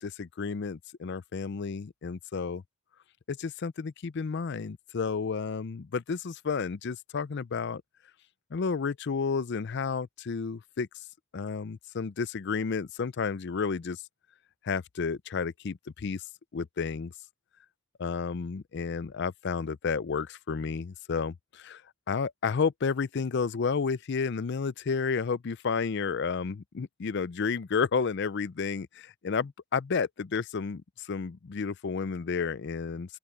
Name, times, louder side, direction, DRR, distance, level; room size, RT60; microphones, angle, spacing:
voice 1, 0.0-2.6 3.3-7.8 8.5-10.9 11.3-14.0 14.6-16.2 16.5-17.1 18.0-21.8 22.1-33.2, left 5 dB, 55° left, 0.5 m, -31 dB
open air
head